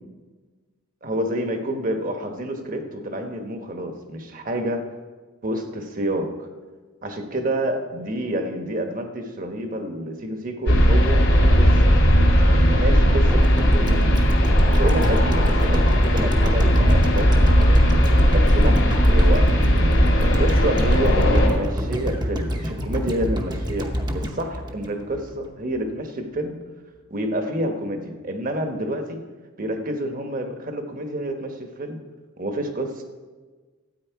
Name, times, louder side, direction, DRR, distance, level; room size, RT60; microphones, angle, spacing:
voice 1, 1.0-4.8 5.4-6.3 7.0-11.9 12.8-14.2 14.7-17.8 18.3-19.5 19.7-23.9 24.1-26.6 27.1-29.2 29.6-32.0 32.4-33.0, right 1 dB, 40° right, 5 dB, 1.1 m, -28 dB
sound 1, 10.7-21.5, equal, 70° left, 2.8 m, -17 dB
sound 2, 13.3-25.5 25.8-25.9, equal, 20° right, 0.8 m, -27 dB
13.0 x 8.9 x 4.6 m, 1.4 s
head